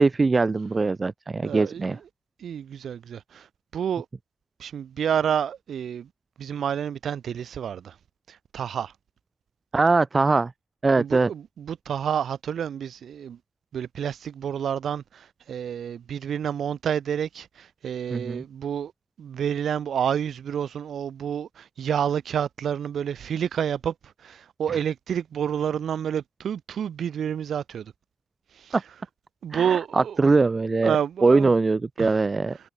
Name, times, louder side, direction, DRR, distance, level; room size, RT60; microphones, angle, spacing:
voice 1, 0.0-2.0 9.7-10.5 10.8-11.3 18.1-18.4 28.7-28.8 29.5-31.0 31.2-32.6, right 3 dB, 20° right, 0.7 m, -21 dB
voice 2, 1.4-2.0 2.4-3.5 3.7-4.1 4.6-6.1 6.4-7.9 8.3-8.9 11.0-13.4 13.7-18.9 19.2-23.9 24.2-27.9 28.6-28.8 29.4-30.2 30.8-31.5 32.0-32.1, right 8 dB, 60° right, 0.6 m, -29 dB
wide cardioid pair, 165°, 0 cm